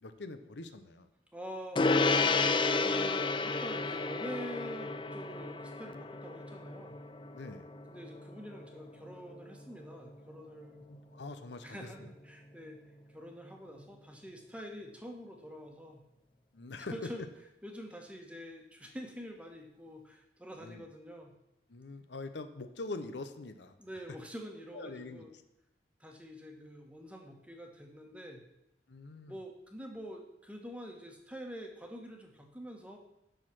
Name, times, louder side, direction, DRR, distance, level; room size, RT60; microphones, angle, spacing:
voice 1, 0.0-1.1 7.3-7.7 10.8-12.1 16.5-17.1 20.6-20.9 21.7-23.8 24.7-25.3 28.9-29.4, left 3 dB, 70° left, 10 dB, 0.7 m, -44 dB
voice 2, 1.3-1.8 2.5-6.9 7.9-10.8 11.6-12.8 13.1-16.0 16.8-17.2 17.6-21.3 23.8-25.3 26.0-28.4 29.3-33.0, equal, 5° right, 2 dB, 1.3 m, -46 dB
Gong, 1.8-11.5, left 3 dB, 25° left, 0.5 m, -33 dB
9.1 x 6.4 x 6.1 m, 0.87 s
head